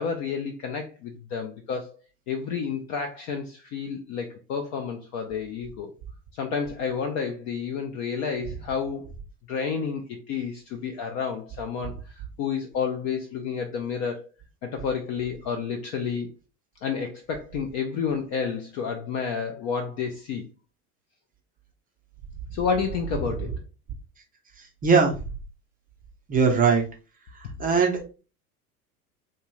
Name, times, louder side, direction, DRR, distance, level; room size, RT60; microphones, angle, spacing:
voice 1, 0.0-1.9 2.3-5.9 6.3-9.1 9.5-14.2 14.6-16.3 16.8-20.5 22.5-23.6, left 6 dB, 40° left, 5 dB, 0.4 m, -30 dB
voice 2, 24.8-25.1 26.3-26.8 27.6-28.0, right 5 dB, 20° right, 2 dB, 0.5 m, -19 dB
2.5 x 2.2 x 2.9 m, 0.34 s
hypercardioid pair, 80°, 46 cm